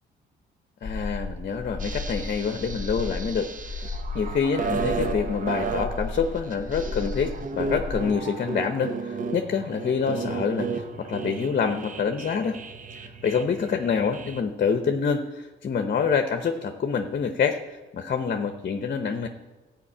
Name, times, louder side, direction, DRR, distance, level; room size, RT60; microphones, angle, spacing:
voice 1, 0.8-12.6 12.9-19.3, left 6 dB, 45° left, 6 dB, 0.9 m, -27 dB
sound 1, 0.8-8.0, left 3 dB, 25° left, 1.1 m, -34 dB
sound 2, 1.8-14.4, right 4 dB, 40° right, 1.0 m, -34 dB
13.0 x 5.2 x 8.7 m, 1.2 s
cardioid pair, 90°, 20 cm